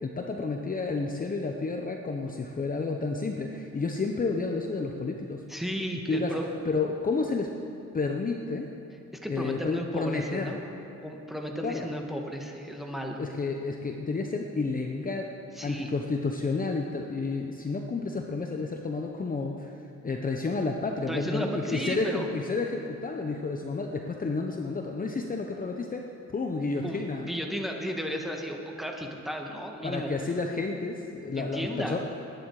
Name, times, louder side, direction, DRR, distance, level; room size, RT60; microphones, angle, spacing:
voice 1, 0.0-5.4 6.1-6.3 6.6-7.5 7.9-8.7 9.3-10.5 11.6-11.9 13.2-15.3 15.6-19.7 20.0-27.3 29.8-32.0, left 3 dB, 30° left, 2 dB, 1.0 m, -31 dB
voice 2, 5.5-6.5 9.2-10.6 11.0-13.2 15.6-15.9 21.1-22.3 26.8-30.1 31.3-32.0, equal, ahead, 1 dB, 1.9 m, -34 dB
19.5 x 10.5 x 4.9 m, 2.9 s
cardioid pair, 90°, 30 cm